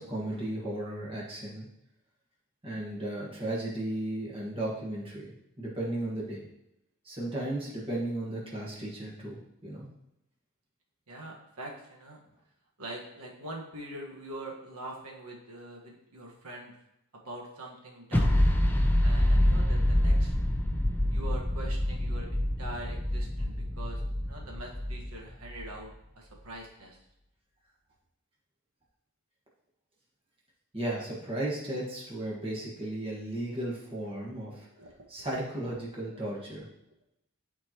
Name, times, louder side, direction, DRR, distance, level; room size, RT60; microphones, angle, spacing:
voice 1, 0.0-1.7 2.6-5.3 5.6-6.4 7.0-9.9 30.7-34.7 35.1-36.7, right 1 dB, 25° right, -4 dB, 1.6 m, -35 dB
voice 2, 11.1-12.2 12.8-16.7 17.1-18.4 18.8-20.3 21.1-25.9 26.1-27.0 34.8-34.9, right 1 dB, 80° right, -1 dB, 1.5 m, -43 dB
sound 1, 18.1-25.6, left 1 dB, 10° left, 0.5 m, -26 dB
11.5 x 4.4 x 3.0 m, 0.87 s
head